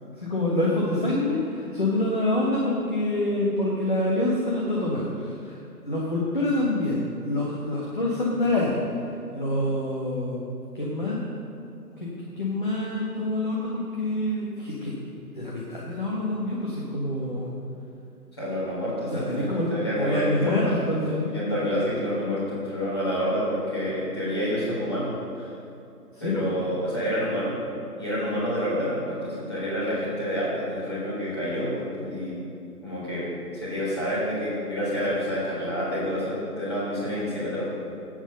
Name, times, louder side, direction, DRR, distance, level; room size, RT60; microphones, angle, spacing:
voice 1, 0.1-8.8 9.3-10.4 10.7-11.2 12.0-14.9 15.3-17.5 19.1-21.3 26.1-26.4, left 1 dB, 30° left, -5 dB, 1.5 m, -26 dB
voice 2, 18.4-20.7 21.2-25.5 26.2-27.5 28.0-32.4 32.8-33.3 33.5-37.6, equal, 15° left, -10 dB, 3.6 m, -28 dB
14.5 x 9.3 x 5.4 m, 2.6 s
figure-of-eight pair, 165°, 48 cm